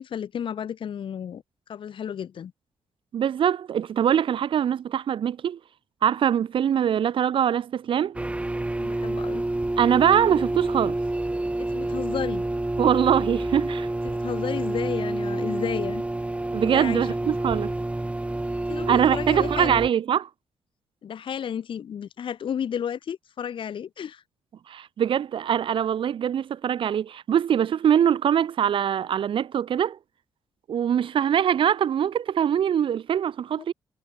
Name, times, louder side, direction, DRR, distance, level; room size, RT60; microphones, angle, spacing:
voice 1, 0.0-1.4 1.7-2.5 8.8-9.4 11.6-12.4 14.0-16.0 16.6-17.1 18.7-19.8 21.0-24.2, left 8 dB, 65° left, 4.2 m, -32 dB
voice 2, 3.1-5.6 6.0-8.2 9.8-11.0 12.8-13.9 16.5-17.7 18.9-20.3 24.7-30.0 30.7-33.7, right 9 dB, 65° right, 2.4 m, -23 dB
sound 1, 8.1-19.9, right 2 dB, 15° right, 4.4 m, -28 dB
cardioid pair, 95°, 9 cm